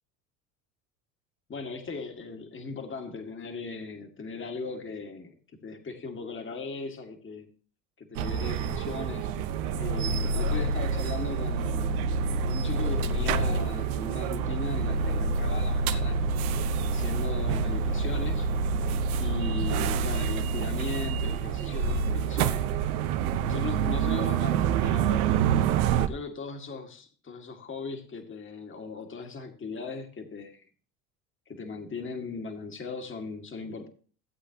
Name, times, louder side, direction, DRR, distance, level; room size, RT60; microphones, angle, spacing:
voice 1, 1.5-5.4 5.6-7.5 8.0-9.3 9.8-12.0 12.4-16.2 16.9-18.5 19.2-22.7 23.4-30.7 31.5-33.9, left 4 dB, 25° left, 1.8 m, -38 dB
sound 1, 8.1-26.1, right 5 dB, 75° right, 1.0 m, -27 dB
15.5 x 8.1 x 2.9 m
hypercardioid pair, 75°, 44 cm